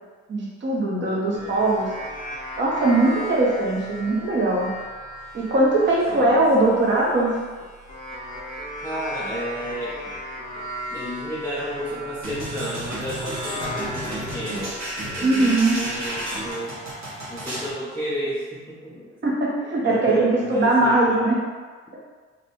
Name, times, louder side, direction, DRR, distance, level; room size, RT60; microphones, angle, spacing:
voice 1, 0.3-1.9 2.6-4.7 5.3-7.3 15.2-15.8 19.2-21.4, right 2 dB, 40° right, -3 dB, 0.8 m, -20 dB
voice 2, 1.1-1.7 6.1-7.0 8.8-10.0 10.6-10.7 10.9-16.7 17.3-19.3 19.8-21.3, equal, 5° left, -9 dB, 0.5 m, -32 dB
sound 1, 1.3-12.7 13.2-16.5, equal, 25° left, 0.8 m, -37 dB
sound 2, 12.2-17.7, right 1 dB, 60° right, 1.0 m, -32 dB
2.7 x 2.1 x 2.9 m, 1.5 s
cardioid pair, 90°, 30 cm